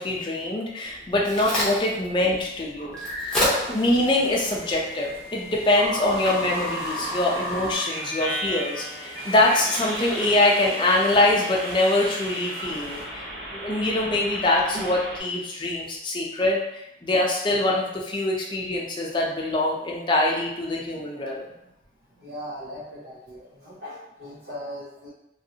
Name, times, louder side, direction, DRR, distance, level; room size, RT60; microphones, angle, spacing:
voice 1, 0.0-3.0 3.2-3.4 3.7-13.2 13.5-16.6 17.0-21.4, left 2 dB, 25° left, -2 dB, 0.5 m, -24 dB
Crack, 0.8-7.7, left 1 dB, 5° left, 0.8 m, -32 dB
sound 1, 2.8-3.7 4.6-15.2, equal, 85° right, 1.0 m, -34 dB
sound 2, 3.4-13.0, right 1 dB, 30° right, 0.9 m, -41 dB
voice 2, 22.2-25.1, equal, 65° right, -7 dB, 0.7 m, -38 dB
3.1 x 2.6 x 2.7 m, 0.85 s
head